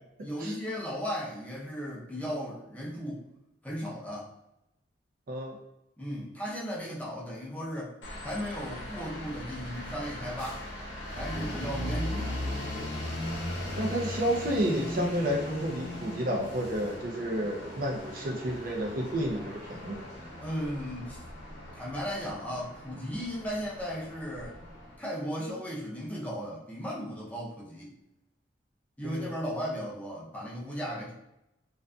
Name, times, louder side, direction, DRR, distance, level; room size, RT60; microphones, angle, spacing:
voice 1, 0.2-3.2 3.6-4.3 6.0-8.0 8.2-10.6 11.1-12.4 20.4-21.2 21.7-24.6 25.0-27.9 29.0-31.1, equal, 10° left, -5 dB, 0.6 m, -36 dB
sound 1, 8.0-25.0, left 1 dB, 85° left, 0.7 m, -38 dB
voice 2, 13.8-20.0 29.0-29.3, equal, 55° right, -1 dB, 0.5 m, -31 dB
2.5 x 2.4 x 2.2 m, 0.86 s
head